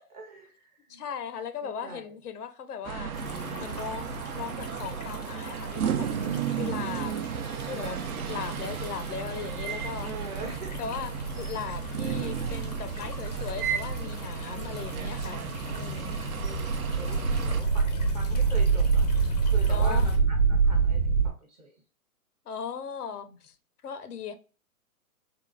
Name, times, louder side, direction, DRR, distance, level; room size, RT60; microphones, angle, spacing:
voice 1, 0.1-1.0 1.6-2.1 10.0-10.8 14.8-15.2 16.4-16.7 17.0-19.0 19.5-21.0 21.6-21.7 23.2-23.3, right 2 dB, 30° right, 0.5 m, -42 dB
voice 2, 0.9-3.1 3.6-6.1 6.6-7.2 7.6-8.0 8.3-10.1 10.8-16.3 19.7-20.1 22.5-23.6 23.8-24.4, left 7 dB, 90° left, 0.6 m, -38 dB
sound 1, 2.8-17.6, right 8 dB, 75° right, 0.6 m, -34 dB
sound 2, 3.1-20.2, left 3 dB, 30° left, 0.4 m, -44 dB
sound 3, 7.8-21.3, right 4 dB, 50° right, 1.0 m, -28 dB
3.7 x 2.1 x 2.3 m
hypercardioid pair, 135°, 44 cm